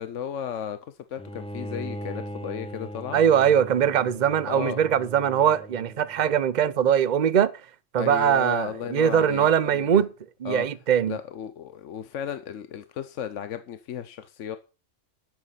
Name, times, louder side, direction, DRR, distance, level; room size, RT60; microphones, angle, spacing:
voice 1, 0.0-3.2 4.5-4.8 8.0-10.0 10.4-10.7 11.1-14.6, left 9 dB, 75° left, 1.1 m, -34 dB
Bowed string instrument, 1.2-6.4, equal, 10° left, 0.3 m, -39 dB
voice 2, 3.1-7.5 7.9-10.1 10.4-11.2, right 9 dB, 40° right, 0.8 m, -21 dB
11.5 x 7.9 x 5.7 m
omnidirectional pair, 1.3 m